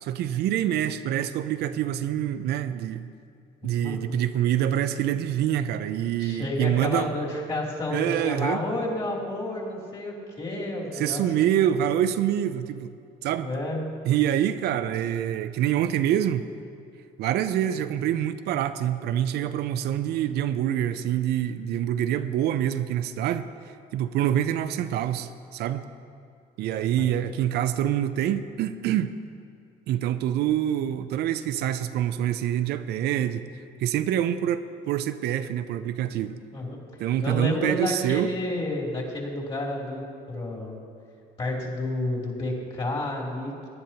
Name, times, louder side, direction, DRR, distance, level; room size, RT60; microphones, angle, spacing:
voice 1, 0.0-3.1 3.6-7.1 7.9-8.6 10.9-12.9 13.2-13.5 14.0-16.4 17.2-23.5 23.9-25.8 26.6-29.1 29.9-33.5 33.8-36.4 37.0-38.3, right 11 dB, 75° right, 10 dB, 0.5 m, -26 dB
voice 2, 3.6-4.2 6.2-11.5 13.4-13.8 27.0-27.4 36.5-36.8 37.2-40.8 41.4-43.7, left 1 dB, 35° left, -3 dB, 3.0 m, -31 dB
18.0 x 10.5 x 2.9 m, 2.4 s
cardioid pair, 110°, 17 cm